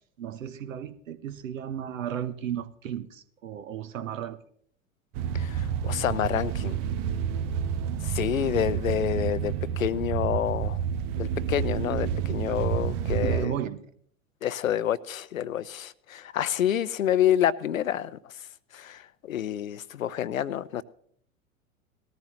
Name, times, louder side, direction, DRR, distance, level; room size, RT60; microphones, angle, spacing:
voice 1, 0.2-4.4 13.2-13.8, right 9 dB, 65° right, 1.0 m, -34 dB
sound 1, 5.1-13.5, right 8 dB, 40° right, 0.8 m, -29 dB
voice 2, 5.3-6.8 8.0-10.8 11.2-13.6 14.4-18.2 18.7-20.8, left 10 dB, 75° left, 0.6 m, -28 dB
18.5 x 14.0 x 3.1 m
figure-of-eight pair, 85°, 41 cm